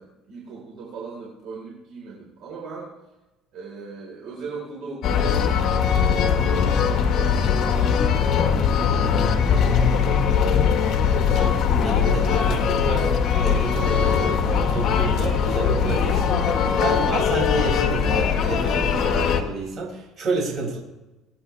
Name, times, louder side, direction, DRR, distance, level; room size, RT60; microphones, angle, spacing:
voice 1, 0.0-2.9 3.5-8.6 9.0-10.6, right 4 dB, 60° right, -3 dB, 4.5 m, -39 dB
sound 1, 5.0-19.4, left 7 dB, 50° left, 1.7 m, -21 dB
voice 2, 11.2-20.8, right 4 dB, 40° right, -2 dB, 6.3 m, -30 dB
24.5 x 9.7 x 3.4 m, 1.0 s
cardioid pair, 140°, 0 cm